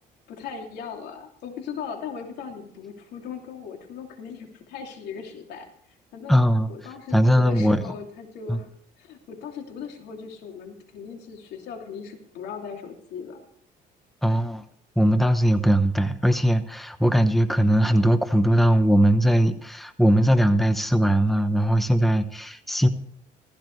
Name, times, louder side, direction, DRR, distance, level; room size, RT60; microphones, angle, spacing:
voice 1, 0.3-5.7 6.1-6.4 6.7-8.7 9.0-13.4, left 6 dB, 80° left, 3 dB, 2.9 m, -38 dB
voice 2, 6.3-6.7 7.1-7.9 8.5-8.6 14.2-14.6 15.0-22.9, equal, ahead, 9 dB, 1.0 m, -20 dB
15.5 x 15.0 x 3.3 m, 0.65 s
cardioid pair, 110°, 17 cm